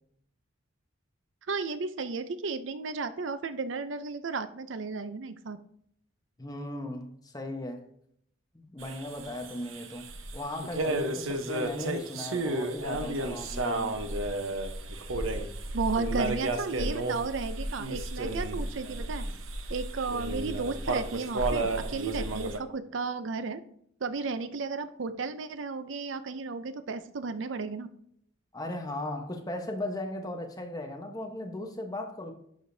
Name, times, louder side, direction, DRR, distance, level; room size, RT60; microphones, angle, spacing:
voice 1, 1.5-5.6 15.7-19.3 19.7-23.6 24.0-27.9, right 4 dB, 65° right, 0.6 m, -34 dB
voice 2, 6.4-7.8 8.5-10.1 10.3-14.0 28.5-32.3, left 1 dB, 20° left, 1.0 m, -37 dB
sound 1, 8.8-22.6, right 2 dB, 80° right, 1.0 m, -32 dB
11.5 x 5.0 x 2.7 m
head